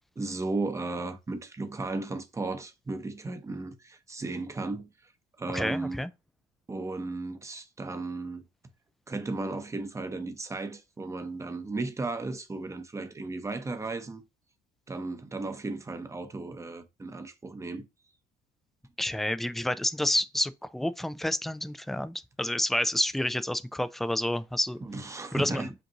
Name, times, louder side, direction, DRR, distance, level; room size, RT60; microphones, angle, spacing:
voice 1, 0.2-4.9 5.4-6.0 6.7-8.4 9.1-14.2 14.9-17.8 24.8-25.7, right 3 dB, 15° right, 0.8 m, -35 dB
voice 2, 5.5-6.1 19.0-24.8 25.3-25.8, left 1 dB, ahead, 0.3 m, -29 dB
5.2 x 2.6 x 2.9 m
cardioid pair, 110°, 17 cm